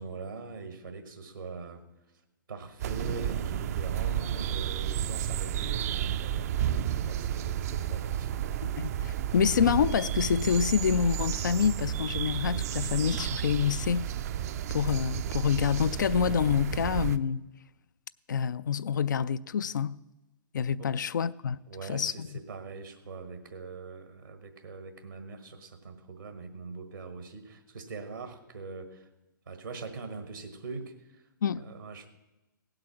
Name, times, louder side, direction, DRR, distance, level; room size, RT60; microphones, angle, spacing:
voice 1, 0.0-1.8 2.5-8.4 20.8-20.9 21.7-29.1 29.5-31.2 31.5-32.1, right 4 dB, 75° right, 1.4 m, -42 dB
sound 1, 2.8-17.2, right 10 dB, 45° right, 0.5 m, -32 dB
voice 2, 8.8-14.1 14.7-17.4 18.3-20.0 20.5-21.6 21.9-22.3 31.4-31.6, left 7 dB, 65° left, 0.4 m, -27 dB
17.0 x 7.8 x 6.0 m
figure-of-eight pair, 110°, 11 cm